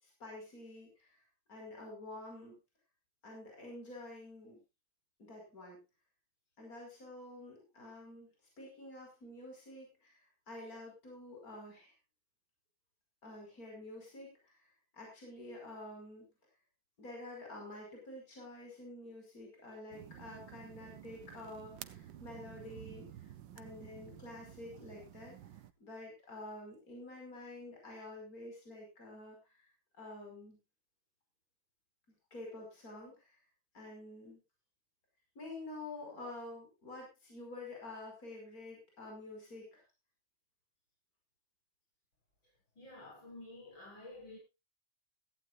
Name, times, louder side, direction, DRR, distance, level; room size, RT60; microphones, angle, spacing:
voice 1, 0.0-2.6 3.2-4.6 5.2-5.8 6.6-11.9 13.2-16.3 17.0-25.3 25.8-30.6 32.3-33.4 33.7-34.4 35.4-39.8, left 2 dB, 45° left, 5.7 m, -49 dB
sound 1, 19.9-25.7, right 11 dB, 70° right, 1.5 m, -52 dB
voice 2, 42.8-44.4, left 2 dB, 75° left, 7.1 m, -50 dB
16.5 x 15.0 x 2.5 m
omnidirectional pair, 2.1 m